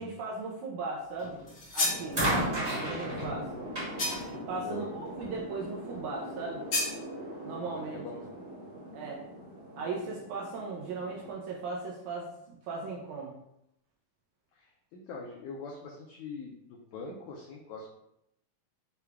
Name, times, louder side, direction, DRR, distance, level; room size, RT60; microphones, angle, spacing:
voice 1, 0.0-1.4 1.7-2.2 2.8-3.5 4.5-6.7 7.4-8.0 8.9-9.2 9.8-13.4, right 3 dB, 80° right, -2 dB, 1.8 m, -37 dB
sound 1, 1.2-1.5 2.1-5.4 6.4-6.5, right 1 dB, 35° right, 1.1 m, -33 dB
sound 2, 1.5-2.1 4.0-4.4 6.7-7.0, left 2 dB, 55° left, 1.5 m, -31 dB
sound 3, 1.8-11.3, right 1 dB, 60° right, 1.8 m, -43 dB
voice 2, 7.9-8.4 14.5-18.0, left 3 dB, 85° left, -2 dB, 1.7 m, -43 dB
6.7 x 2.3 x 3.5 m, 0.81 s
omnidirectional pair, 4.0 m